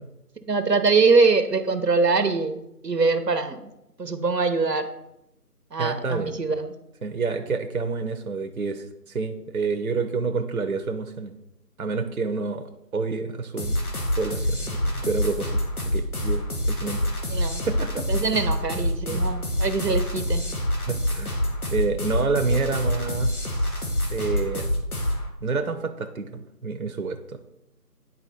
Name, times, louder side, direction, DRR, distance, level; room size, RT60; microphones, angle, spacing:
voice 1, 0.5-3.6 4.0-4.9 5.7-6.7 17.3-17.6 18.1-20.4, right 4 dB, 85° right, 10 dB, 1.0 m, -23 dB
voice 2, 5.8-6.4 7.0-11.3 11.8-13.8 14.2-15.6 15.9-17.0 17.7-18.1 19.1-19.2 20.9-21.3 21.7-24.7 25.4-27.4, right 4 dB, 60° right, 7 dB, 0.8 m, -28 dB
sound 1, 13.6-25.3, left 1 dB, 65° left, 1.7 m, -26 dB
9.7 x 4.1 x 4.2 m, 0.86 s
figure-of-eight pair, 170°, 48 cm